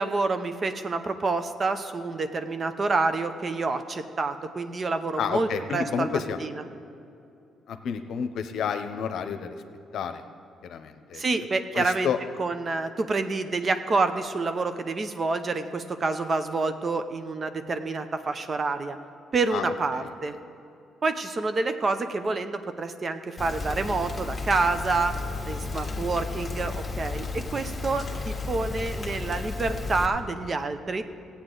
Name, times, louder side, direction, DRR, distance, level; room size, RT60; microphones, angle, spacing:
voice 1, 0.0-6.5 11.1-12.1 12.4-19.0 19.3-20.3 21.0-25.2 25.5-31.0, right 3 dB, 40° right, 9 dB, 0.7 m, -28 dB
voice 2, 5.2-6.4 7.7-9.6 9.9-10.2 10.6-11.5 11.7-12.2 19.5-19.7 19.9-20.1, left 7 dB, 70° left, 9 dB, 0.7 m, -30 dB
Rain, 23.4-30.1, left 3 dB, 20° left, 1.4 m, -33 dB
15.5 x 8.5 x 3.9 m, 2.7 s
cardioid pair, 90°, 0 cm